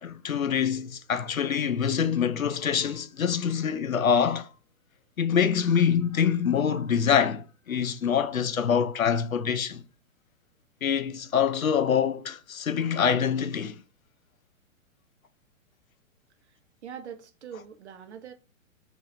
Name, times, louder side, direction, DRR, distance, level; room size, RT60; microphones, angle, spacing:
voice 1, 0.0-4.5 5.2-9.8 10.8-13.7, left 7 dB, 90° left, 0.6 m, -25 dB
voice 2, 16.8-18.3, right 8 dB, 55° right, 0.8 m, -42 dB
4.7 x 3.1 x 2.9 m
figure-of-eight pair, 120°, 40 cm